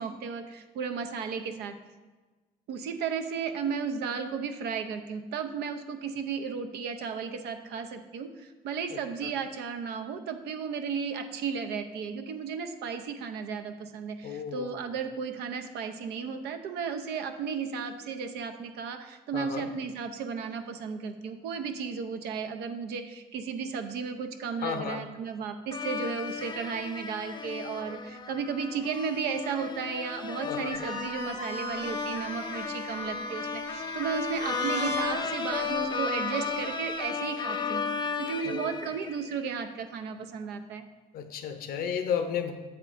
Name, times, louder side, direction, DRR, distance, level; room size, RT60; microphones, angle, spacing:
voice 1, 0.0-1.7 2.7-40.9, right 6 dB, 75° right, 8 dB, 0.7 m, -34 dB
voice 2, 14.2-14.8 19.3-19.6 24.6-25.0 30.4-30.8 38.4-38.7 41.1-42.5, left 7 dB, 60° left, 8 dB, 0.7 m, -33 dB
sound 1, 25.7-39.4, left 5 dB, 25° left, 0.4 m, -34 dB
sound 2, 30.7-37.0, right 2 dB, 45° right, 2.3 m, -39 dB
7.8 x 7.6 x 2.5 m, 1.3 s
cardioid pair, 110°, 17 cm